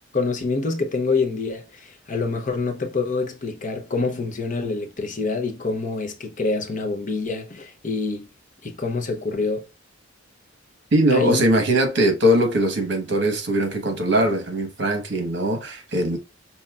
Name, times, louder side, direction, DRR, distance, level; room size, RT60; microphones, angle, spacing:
voice 1, 0.1-8.3 8.6-9.7 11.1-11.4, left 3 dB, 40° left, 0.8 m, -26 dB
voice 2, 10.9-16.2, right 1 dB, 60° right, 1.3 m, -21 dB
5.4 x 2.8 x 2.4 m
head